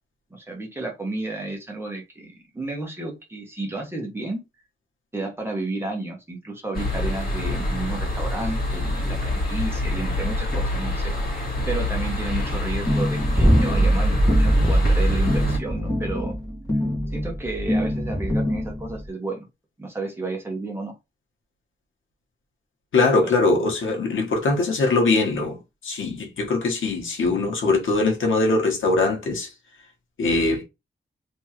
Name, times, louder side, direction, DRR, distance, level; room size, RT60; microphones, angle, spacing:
voice 1, 0.3-4.4 5.1-11.1 11.7-16.3 17.1-19.5 19.8-20.9 23.2-23.3, right 2 dB, 10° right, 1.2 m, -32 dB
sound 1, 6.7-15.6, left 1 dB, 50° left, 2.1 m, -27 dB
sound 2, 12.9-19.0, equal, 20° left, 1.4 m, -21 dB
voice 2, 22.9-29.5 30.2-30.6, left 3 dB, 85° left, 1.3 m, -22 dB
3.5 x 3.1 x 2.9 m
wide cardioid pair, 175°, 20 cm